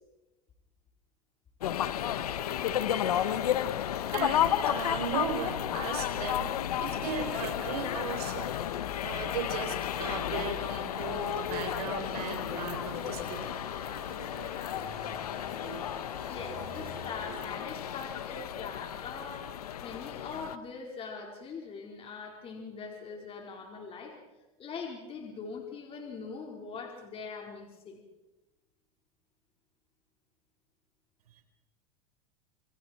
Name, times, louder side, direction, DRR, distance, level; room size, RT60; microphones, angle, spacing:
sound 1, 1.6-20.6, left 11 dB, 85° left, 1.2 m, -33 dB
voice 1, 4.1-6.5 6.8-13.5, right 7 dB, 80° right, 5 dB, 4.4 m, -37 dB
sound 2, 10.9-17.6, right 6 dB, 50° right, 5.0 m, -48 dB
voice 2, 16.3-24.1 24.6-28.0, left 5 dB, 30° left, 1 dB, 4.5 m, -42 dB
27.0 x 23.5 x 4.6 m, 1.1 s
hypercardioid pair, 115°, 19 cm